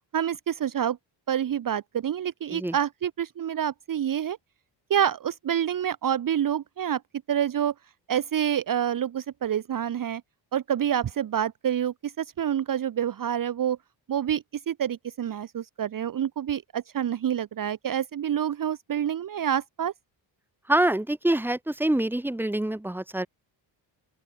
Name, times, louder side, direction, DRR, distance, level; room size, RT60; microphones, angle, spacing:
voice 1, 0.1-1.0 1.3-4.4 4.9-7.0 7.3-7.7 8.1-10.2 10.5-13.8 14.1-19.9, right 9 dB, 45° right, 1.1 m, -27 dB
voice 2, 20.7-23.3, right 1 dB, 5° right, 2.0 m, -25 dB
open air
cardioid pair, 140°, 47 cm